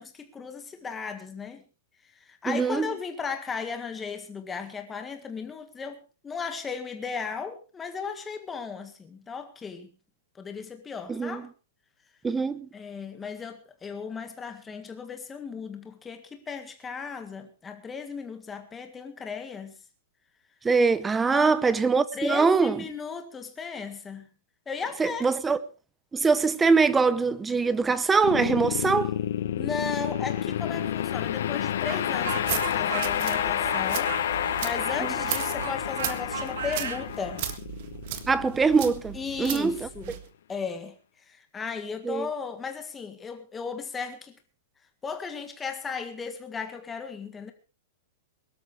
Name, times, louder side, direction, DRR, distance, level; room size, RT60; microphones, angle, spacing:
voice 1, 0.0-1.6 2.0-9.9 10.3-11.5 12.7-19.8 21.2-21.6 22.1-24.3 24.6-25.3 29.5-37.5 39.1-40.2 40.5-44.4 45.0-47.5, left 5 dB, 10° left, 1.7 m, -36 dB
voice 2, 2.5-2.9 11.1-11.4 12.2-12.7 20.6-22.8 25.0-25.6 26.1-29.1 35.0-35.1 38.3-39.9 42.0-42.3, right 4 dB, 10° right, 0.7 m, -23 dB
sound 1, 28.2-39.4, left 10 dB, 60° left, 1.2 m, -29 dB
Speech, 31.9-37.0, right 7 dB, 70° right, 3.2 m, -36 dB
sound 2, 32.2-40.3, right 11 dB, 40° right, 1.7 m, -37 dB
23.0 x 12.5 x 3.4 m
supercardioid pair, 175°, 0 cm